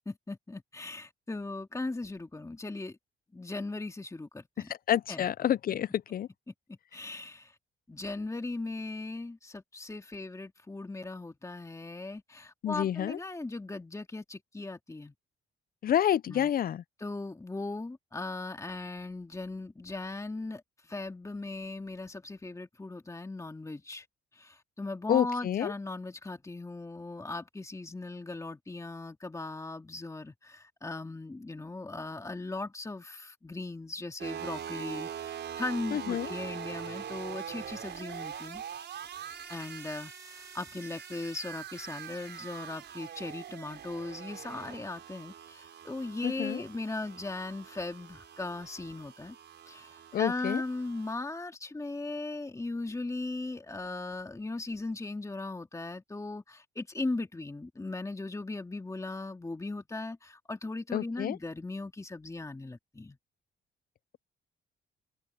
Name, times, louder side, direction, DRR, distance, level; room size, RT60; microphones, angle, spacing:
voice 1, 0.0-3.0 3.3-4.7 5.1-5.3 6.5-7.5 7.9-15.1 16.3-16.5 17.0-20.6 20.9-24.1 24.3-38.6 39.5-49.4 49.7-63.2, left 2 dB, 15° left, 2.4 m, -38 dB
voice 2, 4.7-6.3 12.6-13.2 15.8-16.8 25.1-25.7 35.9-36.3 46.2-46.6 50.1-50.6 60.9-61.4, left 10 dB, 50° left, 0.5 m, -29 dB
sound 1, 34.2-51.1, right 8 dB, 60° right, 5.3 m, -43 dB
cardioid pair, 90°, 20 cm